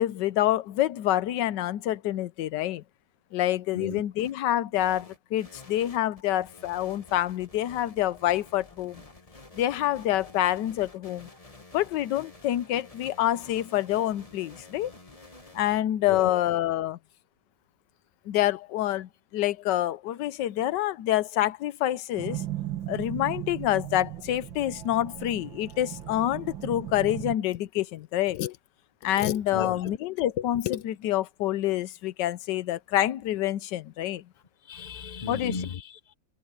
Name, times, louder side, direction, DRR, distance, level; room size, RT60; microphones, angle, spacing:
voice 1, 0.0-2.8 3.3-9.0 9.5-11.3 11.7-14.9 15.5-17.0 18.3-22.4 22.9-28.6 29.0-34.2 35.3-35.6, left 13 dB, 70° left, 1.3 m, -27 dB
sound 1, 4.2-4.3 4.7-15.8, left 2 dB, 20° left, 1.7 m, -50 dB
voice 2, 16.1-16.4 29.5-29.9 34.7-36.1, left 5 dB, 40° left, 0.6 m, -35 dB
sound 2, 22.2-27.4, right 13 dB, 80° right, 2.5 m, -37 dB
omnidirectional pair, 2.1 m